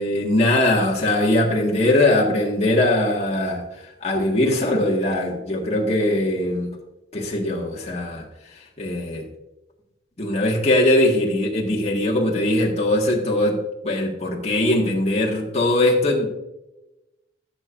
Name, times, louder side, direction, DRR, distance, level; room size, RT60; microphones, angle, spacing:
voice 1, 0.0-6.7 7.1-8.2 8.8-9.2 10.2-13.6 13.8-16.3, left 1 dB, 35° left, -3 dB, 1.7 m, -21 dB
16.0 x 7.0 x 2.6 m, 0.98 s
head